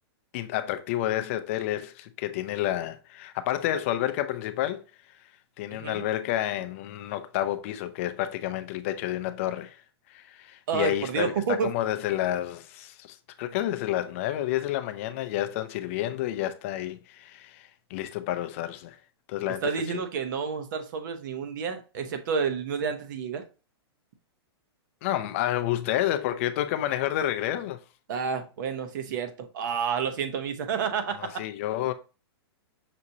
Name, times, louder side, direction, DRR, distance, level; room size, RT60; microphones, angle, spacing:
voice 1, 0.3-4.8 5.6-9.8 10.1-19.0 19.3-20.0 25.0-27.8 31.2-31.9, left 13 dB, 30° left, 0.4 m, -30 dB
voice 2, 5.7-6.0 10.7-11.7 19.5-23.4 28.1-31.4, right 6 dB, 50° right, 0.8 m, -30 dB
6.0 x 2.8 x 2.7 m
hypercardioid pair, 165°, 14 cm